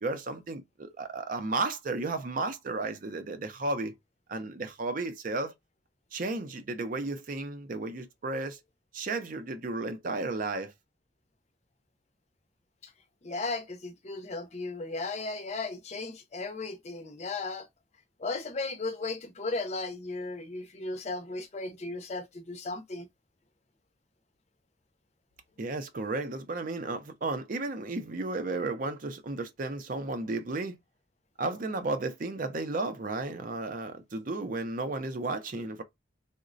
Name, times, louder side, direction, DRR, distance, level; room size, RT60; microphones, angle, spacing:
voice 1, 0.0-3.9 4.3-5.5 6.1-8.6 8.9-10.7 25.6-30.7 31.4-35.8, right 3 dB, 45° right, 0.5 m, -33 dB
voice 2, 13.2-17.7 18.2-23.1, left 3 dB, 40° left, 0.5 m, -36 dB
3.8 x 2.1 x 2.5 m
head